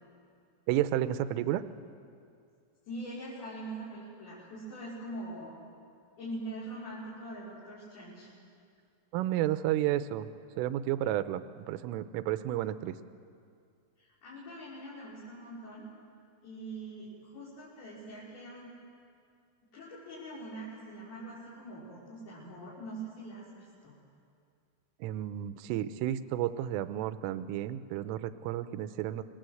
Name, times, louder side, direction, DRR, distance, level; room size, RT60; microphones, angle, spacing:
voice 1, 0.7-1.6 9.1-10.3 10.6-13.0 25.0-29.2, right 12 dB, 85° right, 12 dB, 3.4 m, -31 dB
voice 2, 2.9-5.6 6.2-8.3 14.0-15.9 16.4-18.7 19.7-23.9, right 1 dB, 50° left, -8 dB, 6.5 m, -43 dB
29.0 x 21.0 x 7.9 m, 2.4 s
omnidirectional pair, 5.8 m